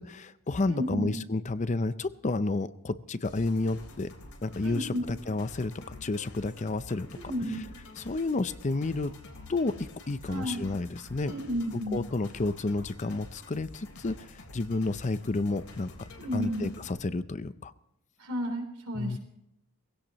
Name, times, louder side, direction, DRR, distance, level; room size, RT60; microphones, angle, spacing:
voice 1, 0.0-4.1 4.4-7.2 8.0-9.1 9.5-11.3 11.9-17.7 18.9-19.2, left 3 dB, 35° left, 13 dB, 0.5 m, -31 dB
voice 2, 0.7-1.1 4.6-5.0 7.3-7.6 10.3-10.6 11.2-12.0 16.2-16.7 18.2-19.2, equal, 80° right, 3 dB, 3.6 m, -32 dB
sound 1, 3.2-17.0, left 2 dB, 70° left, 3.6 m, -48 dB
19.5 x 16.5 x 3.1 m, 0.85 s
head